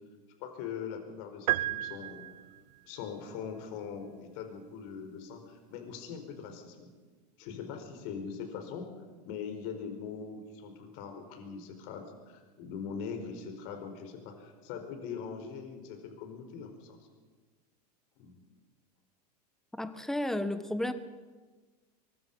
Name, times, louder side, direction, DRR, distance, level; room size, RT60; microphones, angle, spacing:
voice 1, 0.4-2.2 2.9-6.9 7.4-8.9 9.2-17.0 18.2-18.4, left 6 dB, 60° left, 5 dB, 4.9 m, -41 dB
sound 1, 1.5-2.8, right 15 dB, 75° right, 0.7 m, -32 dB
voice 2, 19.7-20.9, left 1 dB, ahead, 10 dB, 1.3 m, -32 dB
23.5 x 22.0 x 5.6 m, 1.4 s
hypercardioid pair, 110°, 21 cm